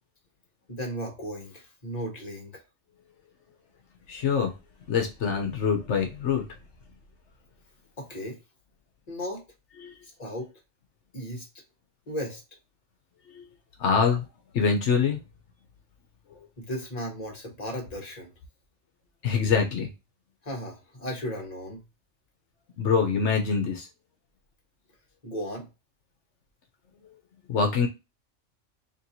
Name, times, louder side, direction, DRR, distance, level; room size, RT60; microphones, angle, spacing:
voice 1, 0.7-2.6 8.0-8.4 9.1-9.4 10.2-10.5 11.1-11.5 12.1-12.4 16.6-18.3 20.4-21.8 25.2-25.7, equal, 35° left, 1.4 m, -35 dB
voice 2, 4.1-4.5 4.9-6.4 9.8-9.9 13.3-13.5 13.8-14.2 14.5-15.2 19.2-19.9 22.8-23.9 27.5-27.9, left 5 dB, 70° left, 1.1 m, -24 dB
4.5 x 2.9 x 2.7 m
omnidirectional pair, 1.3 m